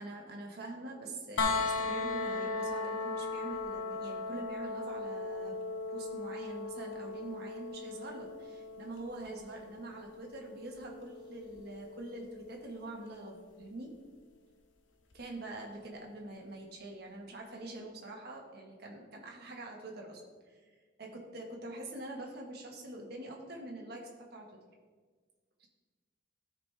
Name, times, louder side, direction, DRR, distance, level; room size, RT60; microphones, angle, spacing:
voice 1, 0.0-5.6 5.9-13.9 15.1-20.2 20.5-20.7 21.0-24.5, right 2 dB, 55° right, 0 dB, 1.5 m, -45 dB
sound 1, 1.4-13.2 15.1-15.2, left 3 dB, 85° left, 0.8 m, -38 dB
13.0 x 5.0 x 3.4 m, 1.5 s
head